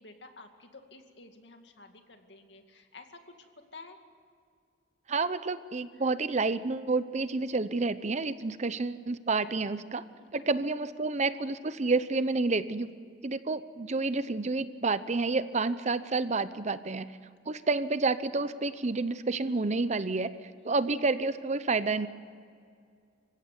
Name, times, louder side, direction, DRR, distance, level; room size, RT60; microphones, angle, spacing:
voice 1, 0.0-4.0 6.0-6.1 10.1-10.4 20.5-20.8, left 3 dB, 75° left, 5 dB, 2.3 m, -52 dB
voice 2, 5.1-10.0 10.3-12.9 13.2-17.1 17.5-20.3 20.6-22.1, right 3 dB, 40° right, 14 dB, 0.8 m, -29 dB
26.5 x 16.0 x 9.5 m, 2.2 s
head